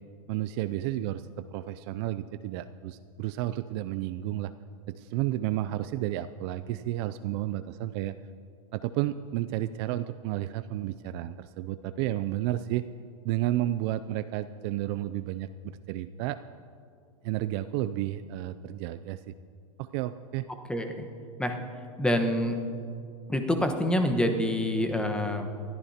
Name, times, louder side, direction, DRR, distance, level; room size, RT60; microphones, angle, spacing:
voice 1, 0.3-1.2 1.5-4.5 4.9-8.2 8.7-12.8 13.2-16.4 17.2-19.2 19.8-20.5, right 14 dB, 50° right, 12 dB, 0.4 m, -31 dB
voice 2, 20.7-21.1 21.4-21.6 22.0-22.6 23.3-25.5, left 1 dB, 5° left, 5 dB, 1.2 m, -26 dB
21.0 x 13.5 x 2.9 m, 2.4 s
hypercardioid pair, 115°, 18 cm